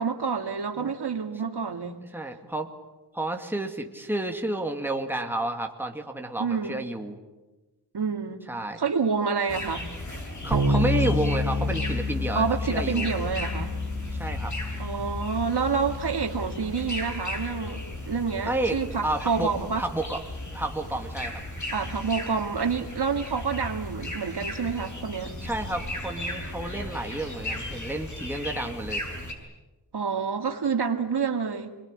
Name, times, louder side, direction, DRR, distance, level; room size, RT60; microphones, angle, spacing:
voice 1, 0.0-2.0 6.4-6.8 7.9-8.5 8.8-9.9 12.3-13.8 14.8-17.8 18.1-19.8 21.7-25.4 29.9-31.7, right 5 dB, 65° right, 5 dB, 2.3 m, -28 dB
voice 2, 2.1-2.7 3.1-7.2 8.5-8.8 10.4-13.1 14.1-14.5 18.4-20.2 20.5-21.4 25.4-29.0, right 1 dB, 5° right, 3 dB, 2.3 m, -31 dB
sound 1, 9.5-29.3, left 1 dB, 45° left, 6.6 m, -36 dB
Bass guitar, 10.5-20.2, left 1 dB, 45° right, 4.1 m, -31 dB
27.0 x 21.5 x 9.9 m, 1.2 s
wide cardioid pair, 125°, 42 cm